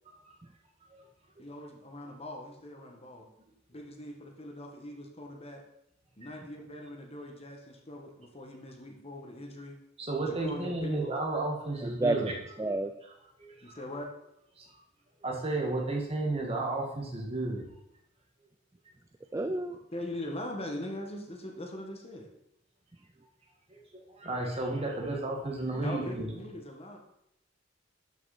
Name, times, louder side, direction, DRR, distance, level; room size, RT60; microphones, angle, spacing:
voice 1, 1.4-3.3 3.7-5.6 6.2-9.8 10.3-11.0 13.6-14.1 19.9-22.3 25.8-27.0, left 1 dB, 30° left, 2 dB, 1.6 m, -41 dB
voice 2, 10.0-12.3 13.7-13.8 15.2-17.6 23.9-26.4, right 2 dB, 30° right, 0 dB, 1.9 m, -32 dB
voice 3, 11.8-12.3 12.6-12.9 19.3-19.7, right 2 dB, 15° right, 9 dB, 0.3 m, -30 dB
12.5 x 5.9 x 4.2 m, 0.82 s
head